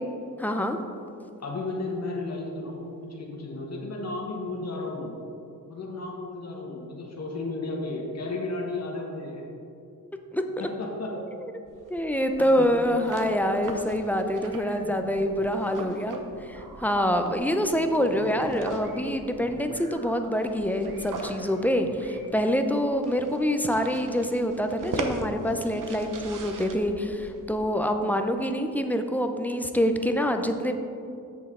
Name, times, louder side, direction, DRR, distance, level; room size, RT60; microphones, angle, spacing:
voice 1, 0.4-0.8 10.3-10.4 11.9-16.2 16.5-30.8, equal, 5° left, 6 dB, 0.5 m, -26 dB
voice 2, 1.4-5.1 5.7-9.4 10.6-11.2 12.4-12.7, left 2 dB, 45° left, -1 dB, 1.4 m, -33 dB
sound 1, 11.7-27.7, right 3 dB, 60° right, 0.9 m, -41 dB
sound 2, 14.5-22.3, right 2 dB, 85° right, 1.2 m, -47 dB
7.8 x 6.8 x 3.7 m, 2.6 s
cardioid pair, 90°, 35 cm